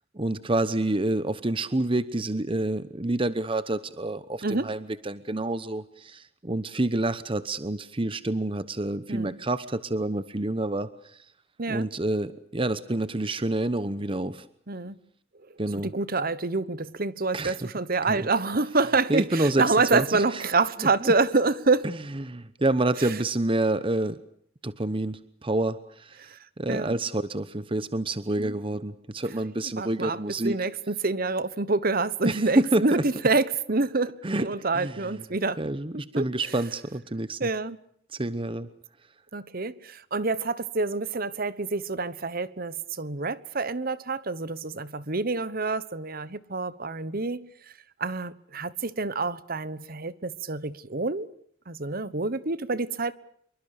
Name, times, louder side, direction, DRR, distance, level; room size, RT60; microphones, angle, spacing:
voice 1, 0.1-11.2 11.7-14.5 15.6-15.9 17.3-17.7 18.1-18.3 19.1-20.4 20.8-21.1 21.8-24.2 24.6-26.3 26.6-30.6 32.2-33.0 34.2-34.5 34.7-35.3 35.6-37.5 38.1-38.7, right 2 dB, 25° right, 1.0 m, -28 dB
voice 2, 14.7-15.0 15.8-21.9 23.0-23.1 26.3-26.4 26.7-27.0 28.4-28.6 29.8-30.2 30.4-35.6 36.1-36.2 37.4-37.8 39.3-47.5 48.0-51.3 51.7-53.1, right 3 dB, 50° right, 1.2 m, -27 dB
27.0 x 23.5 x 6.7 m
head